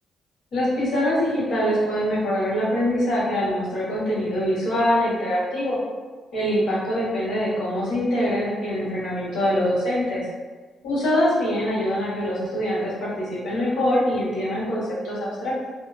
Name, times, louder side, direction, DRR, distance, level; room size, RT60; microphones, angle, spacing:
voice 1, 0.5-5.8 6.3-10.3 10.8-15.7, equal, 60° left, -8 dB, 1.2 m, -24 dB
2.6 x 2.4 x 2.5 m, 1.4 s
cardioid pair, 165°, 0 cm